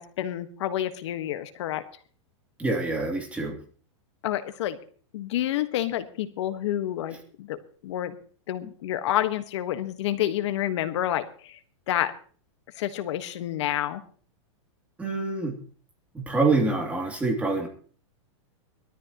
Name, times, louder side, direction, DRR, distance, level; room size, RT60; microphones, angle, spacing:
voice 1, 0.0-1.8 4.2-4.8 5.1-8.2 8.5-11.6 11.9-12.2 12.8-14.0, left 12 dB, 65° left, 9 dB, 1.4 m, -29 dB
voice 2, 2.6-3.6 15.0-15.6 16.1-17.7, right 3 dB, 10° right, 1 dB, 2.8 m, -26 dB
21.0 x 13.5 x 3.0 m, 0.44 s
supercardioid pair, 150°, 16 cm